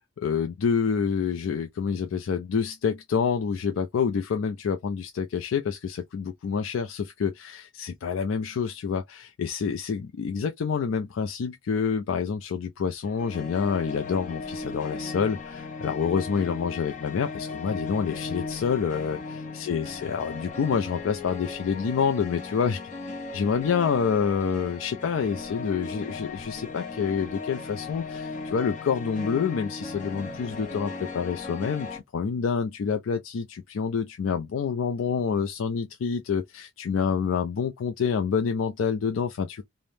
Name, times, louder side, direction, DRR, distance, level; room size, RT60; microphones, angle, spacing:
voice 1, 0.2-19.2 19.5-22.8 23.3-39.6, left 6 dB, 70° left, 0.4 m, -27 dB
sound 1, 13.0-32.0, left 3 dB, 40° left, 0.7 m, -37 dB
3.3 x 2.0 x 2.6 m
head